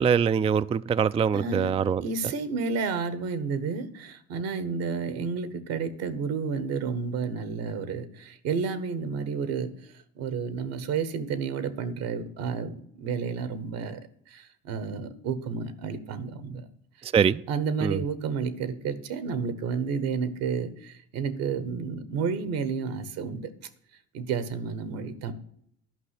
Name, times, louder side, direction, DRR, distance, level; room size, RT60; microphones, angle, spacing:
voice 1, 0.0-2.0 17.0-17.4 17.8-18.0, right 7 dB, 20° right, 0.3 m, -23 dB
voice 2, 1.3-14.0 14.3-16.6 17.5-23.5 24.1-25.3, right 5 dB, 80° right, 1.4 m, -31 dB
11.0 x 5.6 x 8.3 m
hypercardioid pair, 60°, 35 cm